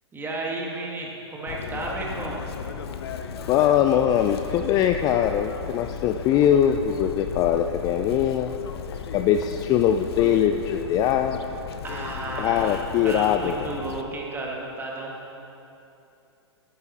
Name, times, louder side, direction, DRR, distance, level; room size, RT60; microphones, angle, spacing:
voice 1, 0.1-2.4 11.8-15.1, right 2 dB, 15° right, -1 dB, 1.7 m, -33 dB
Chirp tweet, 1.5-14.0, left 6 dB, 60° left, 0.7 m, -35 dB
voice 2, 3.5-8.5 9.1-11.4 12.4-13.5, left 9 dB, 25° left, 6 dB, 0.4 m, -22 dB
11.5 x 9.5 x 4.2 m, 2.8 s
figure-of-eight pair, 110°, 15 cm